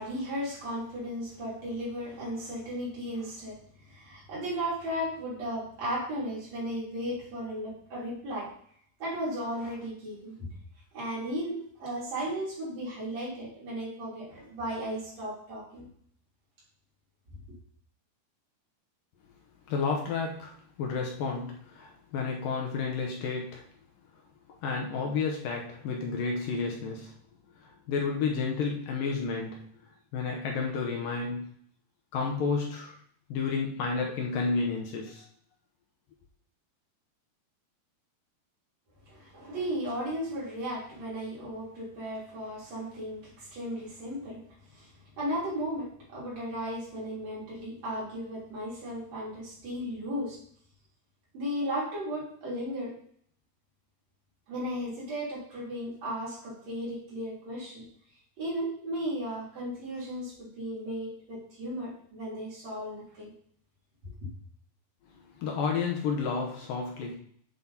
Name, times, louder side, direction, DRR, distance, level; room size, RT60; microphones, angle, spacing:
voice 1, 0.0-8.5 9.0-10.5 10.9-15.9 39.1-44.9 45.2-50.4 51.3-52.9 54.5-57.9 58.4-63.3 64.0-64.1, equal, 40° right, -7 dB, 4.5 m, -35 dB
voice 2, 19.7-23.6 24.5-27.1 27.6-29.6 30.1-31.5 32.1-33.0 33.3-35.2 65.4-67.2, left 5 dB, 70° left, 0 dB, 2.3 m, -31 dB
9.2 x 7.1 x 2.9 m, 0.62 s
omnidirectional pair, 4.8 m